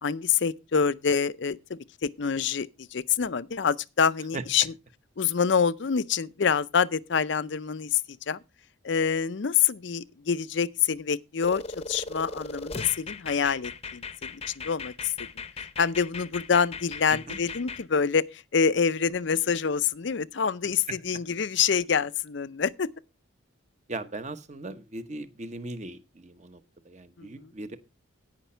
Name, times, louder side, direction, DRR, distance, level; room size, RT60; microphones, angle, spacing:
voice 1, 0.0-4.7 5.2-8.0 8.3-8.4 8.8-15.1 15.8-22.9 27.2-27.5, left 6 dB, 60° left, 0.5 m, -26 dB
sound 1, 11.4-17.8, left 4 dB, 30° left, 0.8 m, -38 dB
voice 2, 23.9-27.8, right 2 dB, 35° right, 1.0 m, -38 dB
17.0 x 5.9 x 4.4 m
head